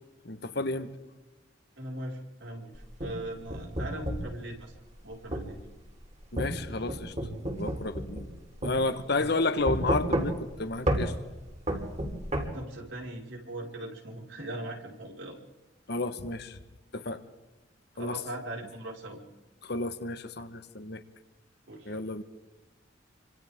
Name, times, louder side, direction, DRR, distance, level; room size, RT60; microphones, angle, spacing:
voice 1, 0.2-0.9 6.3-7.1 7.5-8.3 8.6-11.1 15.9-16.6 16.9-17.2 18.0-18.2 19.6-21.0 21.9-22.2, left 2 dB, 60° left, 10 dB, 1.4 m, -31 dB
voice 2, 1.8-4.7 5.0-5.6 9.2-9.3 12.5-15.4 17.9-19.2 21.7-22.0, right 1 dB, 85° right, -1 dB, 5.3 m, -40 dB
sound 1, 2.8-4.3 5.3-5.5 6.4-8.4 8.6-8.8 9.7-10.5 10.9-11.1 11.7-12.5, right 1 dB, 40° right, 3.9 m, -30 dB
28.0 x 25.5 x 3.7 m, 1.1 s
head